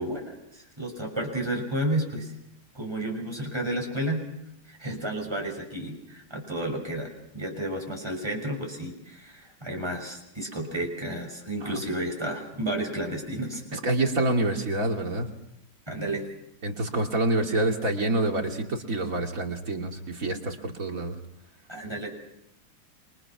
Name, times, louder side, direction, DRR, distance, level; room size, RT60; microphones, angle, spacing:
voice 1, 0.0-2.3 2.7-4.2 4.7-13.8 15.9-16.3 21.7-22.2, right 1 dB, 15° right, 1 dB, 6.4 m, -32 dB
voice 2, 13.7-15.3 16.6-21.1, right 2 dB, 50° right, 2 dB, 3.0 m, -27 dB
29.0 x 25.5 x 6.0 m, 0.82 s
omnidirectional pair, 1.9 m